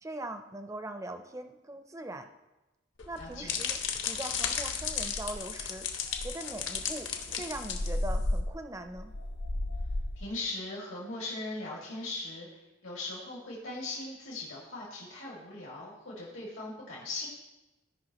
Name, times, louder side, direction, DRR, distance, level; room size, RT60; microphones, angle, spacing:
voice 1, 0.0-2.3 3.1-3.8 4.1-5.9 6.2-9.1, right 1 dB, 15° right, 7 dB, 0.5 m, -41 dB
sound 1, 3.0-8.4, left 7 dB, 70° left, 1.1 m, -35 dB
voice 2, 3.1-3.6 10.2-17.3, left 2 dB, 85° left, -5 dB, 2.4 m, -39 dB
sound 2, 3.4-3.5 3.9-4.2 4.5-4.6 4.9-5.6 6.1-10.3, left 1 dB, 55° left, 0.6 m, -34 dB
16.5 x 5.5 x 3.0 m, 1.0 s
head